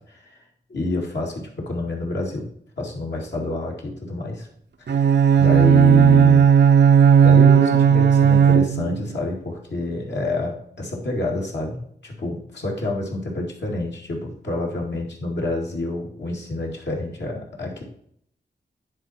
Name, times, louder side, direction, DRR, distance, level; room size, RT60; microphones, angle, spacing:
voice 1, 0.7-2.5 2.8-4.5 4.8-6.5 7.2-17.8, left 2 dB, 75° left, -2 dB, 2.2 m, -28 dB
Bowed string instrument, 4.9-9.1, right 7 dB, 75° right, 0.5 m, -14 dB
9.9 x 4.6 x 4.3 m, 0.68 s
cardioid pair, 50°, 18 cm